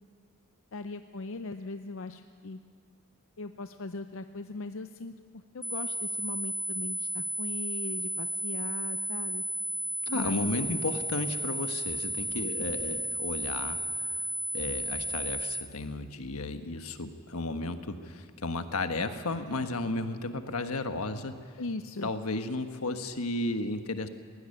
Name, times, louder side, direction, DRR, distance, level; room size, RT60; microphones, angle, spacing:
voice 1, 0.7-2.6 3.4-5.1 5.5-9.4 10.1-10.7 12.3-12.5 21.6-22.1, left 3 dB, 60° left, 9 dB, 0.6 m, -39 dB
sound 1, 5.6-15.6, right 1 dB, ahead, 0.6 m, -33 dB
voice 2, 10.1-13.8 14.5-21.4 22.0-24.1, left 2 dB, 80° left, 8 dB, 1.3 m, -33 dB
20.0 x 16.0 x 10.0 m, 2.1 s
head